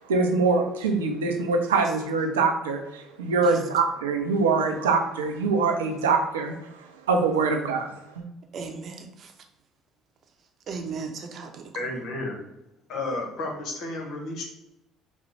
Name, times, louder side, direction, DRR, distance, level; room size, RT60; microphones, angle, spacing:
voice 1, 0.1-6.5 7.1-8.2, right 4 dB, 85° right, 4 dB, 0.5 m, -24 dB
voice 2, 8.5-9.3 10.7-11.9, right 4 dB, 50° right, 4 dB, 0.7 m, -36 dB
voice 3, 11.7-12.4 12.9-14.4, left 2 dB, 60° left, 1 dB, 1.1 m, -32 dB
4.1 x 2.2 x 4.4 m, 0.90 s
hypercardioid pair, 55°, 0 cm